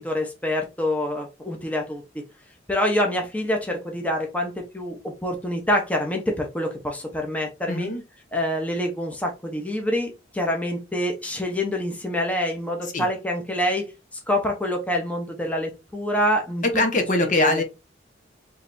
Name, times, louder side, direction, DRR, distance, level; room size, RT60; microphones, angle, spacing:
voice 1, 0.0-2.0 2.7-7.9 8.3-13.9 14.3-16.6 17.4-17.6, left 1 dB, 10° left, 2 dB, 0.9 m, -26 dB
voice 2, 7.7-8.0 12.8-13.1 16.6-17.6, left 2 dB, 45° left, 5 dB, 1.0 m, -22 dB
4.9 x 3.3 x 2.7 m, 0.25 s
head